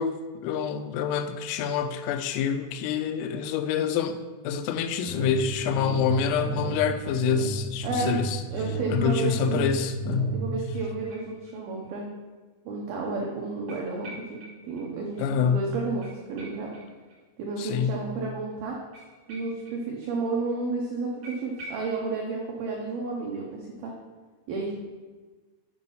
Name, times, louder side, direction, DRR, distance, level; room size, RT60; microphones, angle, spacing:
voice 1, 0.0-4.2 4.4-8.4 8.9-10.4 15.2-15.7 17.6-18.0, left 7 dB, 90° left, 9 dB, 3.2 m, -27 dB
sound 1, 5.1-10.7, right 2 dB, 65° left, 2.5 m, -33 dB
voice 2, 7.8-8.2 8.5-9.7 10.3-12.1 12.7-16.7 17.4-18.8 19.3-23.9 24.5-24.7, right 3 dB, 85° right, -1 dB, 2.1 m, -31 dB
sound 2, 10.7-11.9 12.2-12.3 13.7-14.9 15.1-15.2 15.5-15.6 16.0-17.5 18.9-20.1 20.4-20.5 20.7-20.8 21.2-21.9, right 1 dB, 45° right, 2.1 m, -47 dB
8.8 x 5.3 x 5.5 m, 1.3 s
omnidirectional pair, 5.7 m